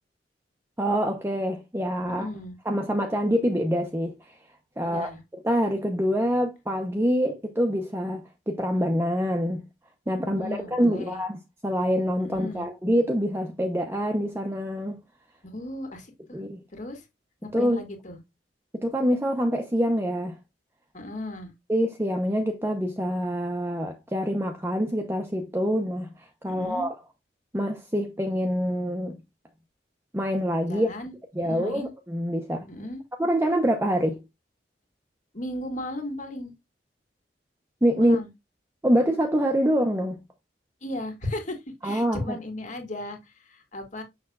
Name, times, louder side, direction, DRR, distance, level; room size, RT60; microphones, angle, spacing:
voice 1, 0.8-2.3 2.6-4.1 4.8-5.1 5.4-9.6 10.1-11.4 11.6-15.0 16.3-16.6 17.5-17.8 18.7-20.3 21.7-26.1 26.4-26.9 27.5-29.2 30.1-30.9 31.4-32.7 33.2-34.2 37.8-38.2 38.8-40.2 41.8-42.4, equal, 15° right, 0.9 m, -25 dB
voice 2, 2.0-2.6 4.8-5.2 10.2-11.2 12.2-12.7 15.5-16.4 16.7-17.0 17.4-18.2 20.9-21.5 26.5-26.9 30.7-31.9 32.7-33.0 35.3-36.5 38.0-38.3 40.8-44.0, left 1 dB, 45° left, 2.1 m, -36 dB
7.0 x 6.4 x 2.4 m
head